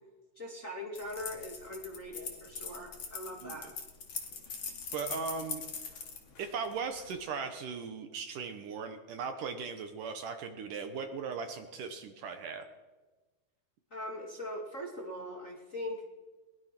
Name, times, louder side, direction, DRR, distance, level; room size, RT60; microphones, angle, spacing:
voice 1, 0.4-3.7 13.9-16.1, left 1 dB, 25° left, 0 dB, 2.1 m, -41 dB
sound 1, 0.9-7.2, left 5 dB, 45° left, 3.1 m, -42 dB
voice 2, 4.6-5.9 6.4-12.7, right 5 dB, 65° right, 7 dB, 2.4 m, -38 dB
22.0 x 20.5 x 6.0 m, 1.3 s
omnidirectional pair, 4.5 m